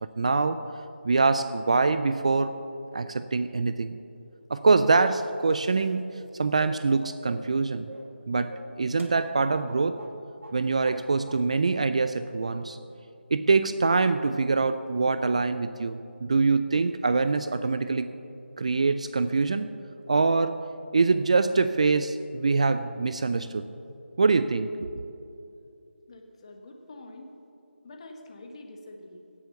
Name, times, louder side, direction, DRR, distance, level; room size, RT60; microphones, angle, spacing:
voice 1, 0.0-0.6 1.0-2.5 2.9-4.0 4.5-7.9 8.3-10.0 10.5-12.8 13.3-18.1 18.6-19.7 20.1-20.6 20.9-23.7 24.2-24.9, right 4 dB, 35° right, 11 dB, 0.3 m, -24 dB
sound 1, 6.6-6.9 7.2-7.6 7.9-8.2 8.5-9.7 10.0-10.2 10.4-11.0 11.3-11.4, right 1 dB, 85° right, 2.2 m, -44 dB
voice 2, 26.1-27.3 27.8-29.2, left 2 dB, 30° left, 3 dB, 1.4 m, -46 dB
17.0 x 7.8 x 6.9 m, 2.8 s
figure-of-eight pair, 170°, 7 cm